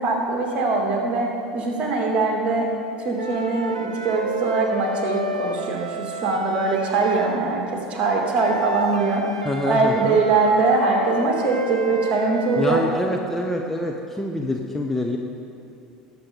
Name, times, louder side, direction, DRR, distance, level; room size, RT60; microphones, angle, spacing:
voice 1, 0.0-2.7 3.0-9.2 9.7-12.8, right 3 dB, 35° right, -1 dB, 2.4 m, -22 dB
sound 1, 3.2-7.5 8.4-13.0, right 2 dB, 80° right, 0.6 m, -31 dB
voice 2, 9.4-10.2 12.6-15.2, left 1 dB, 5° left, 1 dB, 0.8 m, -26 dB
18.5 x 7.5 x 3.9 m, 2.7 s
figure-of-eight pair, 70°, 4 cm